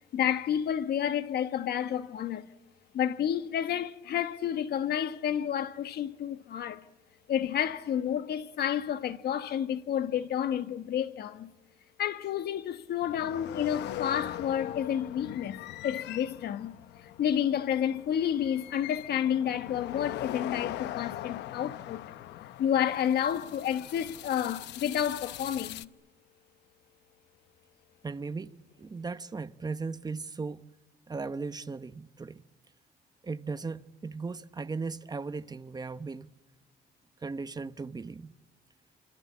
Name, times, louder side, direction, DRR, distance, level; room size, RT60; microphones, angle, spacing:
voice 1, 0.1-2.5 2.9-6.8 7.3-11.5 12.0-16.8 17.0-22.0 22.6-25.9, left 9 dB, 65° left, 1.4 m, -30 dB
sound 1, 13.0-25.8, left 13 dB, 90° left, 0.9 m, -41 dB
voice 2, 28.0-30.6 31.1-32.4 33.2-36.3 37.2-38.3, right 4 dB, 25° right, 1.0 m, -37 dB
27.0 x 26.0 x 8.6 m
cardioid pair, 115°, 17 cm